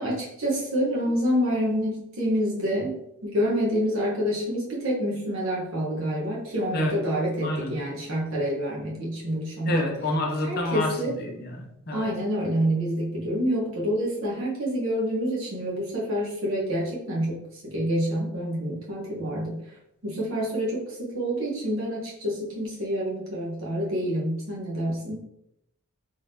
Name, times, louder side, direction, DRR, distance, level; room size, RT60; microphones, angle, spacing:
voice 1, 0.0-2.9 3.2-9.8 10.4-11.2 11.9-19.6 20.0-25.2, equal, 65° right, -4 dB, 1.2 m, -27 dB
voice 2, 7.4-7.8 9.7-12.1, left 1 dB, 45° left, 1 dB, 0.6 m, -29 dB
3.6 x 3.4 x 2.7 m, 0.80 s
head